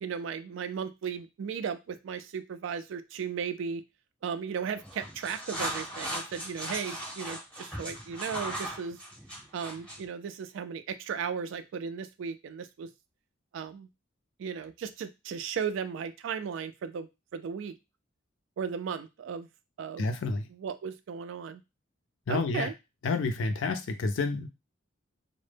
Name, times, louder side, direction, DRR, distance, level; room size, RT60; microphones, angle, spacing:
voice 1, 0.0-3.8 4.2-9.0 9.5-12.9 13.5-13.9 14.4-17.8 18.6-19.5 19.8-20.1 20.5-21.6 22.3-22.7, right 6 dB, 75° right, 11 dB, 0.3 m, -36 dB
sound 1, 4.8-10.1, right 1 dB, 5° left, 0.7 m, -38 dB
voice 2, 20.0-20.5 22.3-22.7 23.0-24.5, left 3 dB, 75° left, 8 dB, 0.4 m, -29 dB
2.0 x 2.0 x 3.2 m, 0.25 s
head